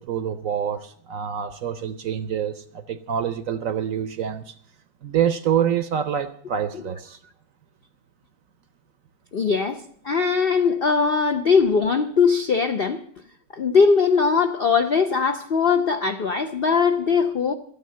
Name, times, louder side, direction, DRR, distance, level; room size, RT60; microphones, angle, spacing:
voice 1, 0.0-4.5 5.0-7.2, right 8 dB, 65° right, 0.9 m, -26 dB
voice 2, 9.3-13.0 13.5-17.5, left 5 dB, 70° left, 0.5 m, -20 dB
13.0 x 9.3 x 7.6 m
omnidirectional pair, 1.9 m